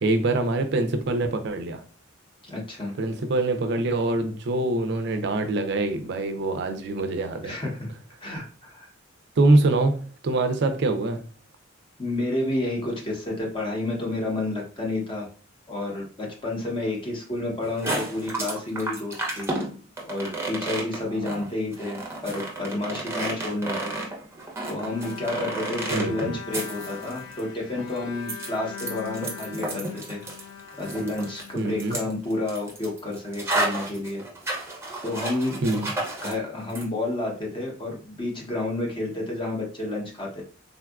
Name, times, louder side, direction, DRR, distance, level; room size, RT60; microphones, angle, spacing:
voice 1, 0.0-1.8 3.0-7.5 9.4-11.2 21.1-21.4 25.9-26.3 31.6-32.0 35.6-35.9, right 2 dB, 55° right, 0.4 m, -24 dB
voice 2, 2.4-3.0 7.4-7.9 8.2-8.9 12.0-15.3 15.7-19.6 20.0-23.9 24.7-30.2 30.8-34.2 35.0-35.8 36.2-40.4, left 2 dB, 25° left, 0.8 m, -30 dB
sound 1, 17.6-36.4 36.7-36.8, right 2 dB, 10° right, 0.7 m, -32 dB
Bowed string instrument, 24.8-32.2, left 8 dB, 85° left, 0.4 m, -41 dB
3.6 x 2.3 x 2.3 m
head